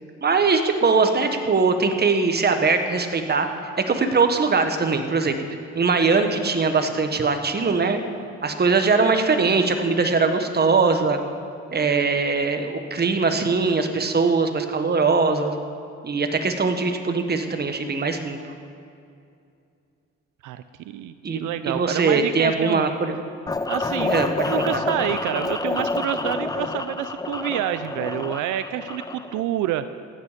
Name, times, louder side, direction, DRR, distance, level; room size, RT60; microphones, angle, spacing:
voice 1, 0.2-5.3 5.7-8.0 8.4-11.2 11.7-15.5 16.0-18.4 21.2-23.2 24.1-24.3 24.5-24.8, right 4 dB, 35° right, 7 dB, 1.4 m, -21 dB
voice 2, 20.4-22.8 23.7-29.9, right 12 dB, 85° right, 12 dB, 0.5 m, -28 dB
sound 1, 23.5-29.4, left 3 dB, 15° left, 0.5 m, -28 dB
15.5 x 10.0 x 5.1 m, 2.5 s
cardioid pair, 90°, 30 cm